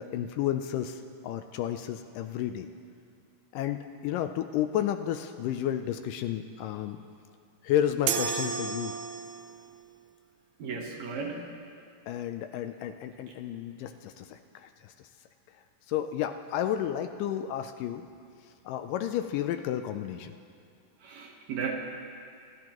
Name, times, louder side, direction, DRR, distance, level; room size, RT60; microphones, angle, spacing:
voice 1, 0.0-2.7 3.5-7.0 7.6-8.9 12.1-14.7 15.9-18.1 18.7-20.4, left 10 dB, 80° left, 8 dB, 2.0 m, -31 dB
sound 1, 8.1-9.6, right 6 dB, 85° right, 2.3 m, -31 dB
voice 2, 10.6-11.4 21.0-21.7, right 5 dB, 65° right, 1 dB, 2.1 m, -35 dB
25.5 x 12.0 x 3.0 m, 2.4 s
omnidirectional pair, 4.0 m